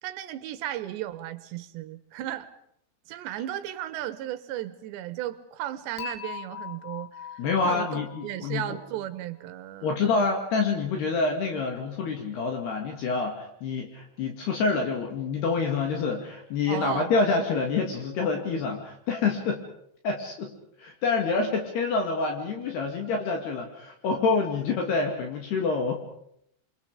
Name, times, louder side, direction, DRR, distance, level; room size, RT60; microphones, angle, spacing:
voice 1, 0.0-2.5 3.1-7.4 7.6-10.0 16.7-17.1, right 12 dB, 70° right, 13 dB, 3.2 m, -35 dB
Dishes pots and pans / Chink clink, 6.0-9.1, left 8 dB, 85° left, 5.3 m, -41 dB
voice 2, 7.4-8.8 9.8-19.6 20.0-20.5 20.8-26.0, left 4 dB, 60° left, 2 dB, 4.2 m, -27 dB
29.0 x 25.0 x 5.2 m, 0.72 s
omnidirectional pair, 5.6 m